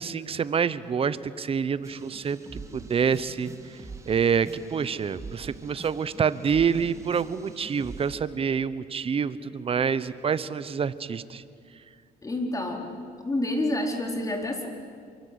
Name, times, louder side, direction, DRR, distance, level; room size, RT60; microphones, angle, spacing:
voice 1, 0.0-3.5 4.0-11.4, right 6 dB, 35° right, 15 dB, 1.0 m, -27 dB
sound 1, 1.8-8.2, right 3 dB, 15° right, 2.7 m, -44 dB
voice 2, 12.2-12.9 13.2-14.7, left 1 dB, 20° left, 3 dB, 4.3 m, -28 dB
27.0 x 24.0 x 8.3 m, 2.2 s
cardioid pair, 110°, 17 cm